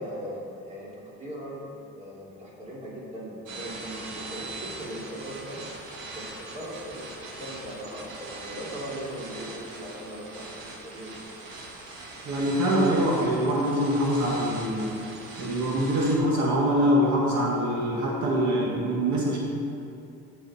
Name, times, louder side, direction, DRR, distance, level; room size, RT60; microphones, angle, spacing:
voice 1, 0.0-5.6 6.0-11.2, equal, 25° right, -6 dB, 2.8 m, -39 dB
sound 1, 3.5-16.2, right 2 dB, 85° right, 1.9 m, -41 dB
voice 2, 12.3-14.9 15.4-19.4, equal, 70° right, -3 dB, 1.9 m, -24 dB
16.0 x 6.7 x 4.3 m, 2.5 s
cardioid pair, 150°, 30 cm